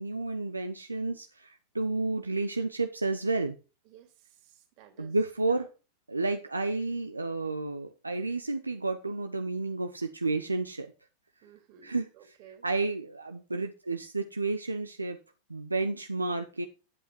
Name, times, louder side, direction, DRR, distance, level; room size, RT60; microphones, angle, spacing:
voice 1, 0.0-3.6 5.0-5.7 6.1-10.9 11.8-12.1 12.6-15.2 15.5-16.7, right 3 dB, 80° right, 7 dB, 0.8 m, -31 dB
voice 2, 3.8-5.2 5.5-5.7 11.4-12.6, right 9 dB, 45° right, 6 dB, 2.6 m, -56 dB
11.0 x 8.0 x 4.6 m, 0.33 s
figure-of-eight pair, 90°, 0 cm